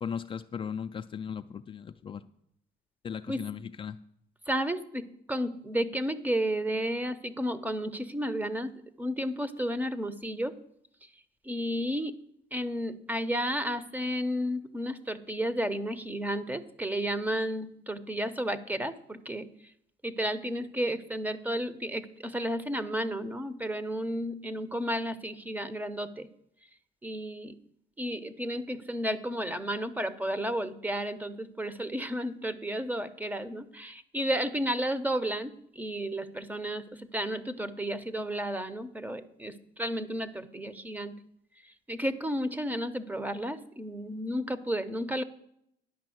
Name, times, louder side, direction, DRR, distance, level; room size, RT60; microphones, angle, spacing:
voice 1, 0.0-2.2 3.0-4.0, left 7 dB, 30° left, 8 dB, 0.4 m, -37 dB
voice 2, 4.5-5.0 5.3-8.7 9.0-10.5 11.5-12.2 12.5-19.4 20.0-26.3 27.0-27.5 28.0-36.8 37.1-41.1 41.9-45.2, equal, 10° right, 14 dB, 0.7 m, -32 dB
10.5 x 5.6 x 7.7 m, 0.73 s
cardioid pair, 110°, 17 cm